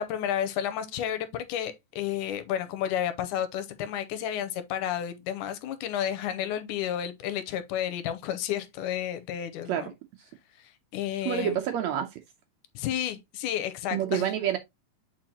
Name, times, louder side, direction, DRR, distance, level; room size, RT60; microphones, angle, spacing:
voice 1, 0.0-9.9 10.6-11.6 12.8-14.3, left 10 dB, 85° left, 2.1 m, -31 dB
voice 2, 11.2-12.1 13.9-14.6, right 10 dB, 75° right, 1.7 m, -27 dB
7.6 x 4.6 x 2.9 m
omnidirectional pair, 3.7 m